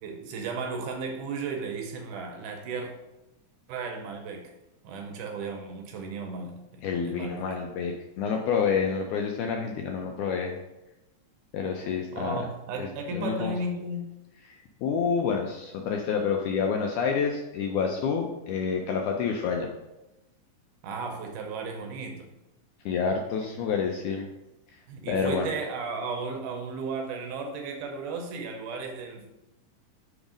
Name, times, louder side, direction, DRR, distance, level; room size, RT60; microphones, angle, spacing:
voice 1, 0.0-2.9 3.7-4.5 4.8-6.6 7.0-7.5 12.1-14.1 20.8-22.3 23.4-23.5 24.9-29.4, right 3 dB, 80° right, 3 dB, 2.0 m, -34 dB
voice 2, 6.8-10.5 11.5-12.4 12.8-13.5 14.5-19.7 22.9-24.3 25.1-25.5, left 6 dB, 80° left, 2 dB, 1.8 m, -28 dB
5.6 x 3.5 x 5.0 m, 0.96 s
omnidirectional pair, 4.0 m